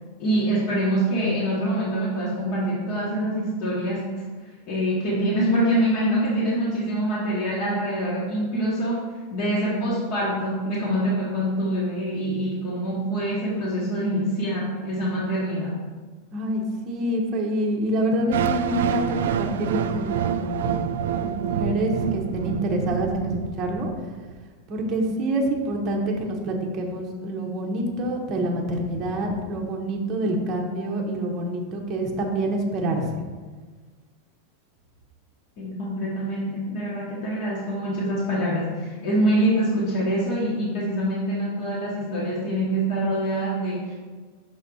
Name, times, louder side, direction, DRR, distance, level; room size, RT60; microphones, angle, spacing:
voice 1, 0.2-4.3 4.7-9.0 9.3-15.8 35.6-43.9, right 1 dB, 35° left, -6 dB, 1.2 m, -25 dB
voice 2, 16.3-20.9 21.2-23.9 24.7-33.1, right 1 dB, 20° right, 0 dB, 0.9 m, -27 dB
sound 1, 18.3-24.3, right 8 dB, 75° right, 0.4 m, -27 dB
6.3 x 4.0 x 6.1 m, 1.4 s
supercardioid pair, 180°, 0 cm